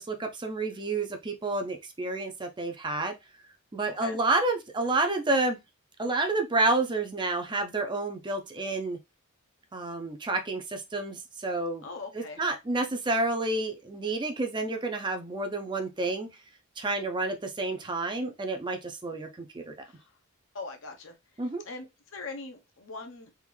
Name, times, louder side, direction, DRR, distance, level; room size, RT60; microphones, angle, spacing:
voice 1, 0.0-3.1 3.7-5.6 6.0-9.0 9.7-11.8 12.1-16.3 16.8-19.7 21.4-21.6, right 2 dB, 20° right, 0.5 m, -29 dB
voice 2, 11.8-12.4 19.8-20.0 20.5-21.1 21.6-21.9 22.1-23.3, left 3 dB, 60° left, 0.8 m, -40 dB
3.5 x 2.5 x 3.1 m
head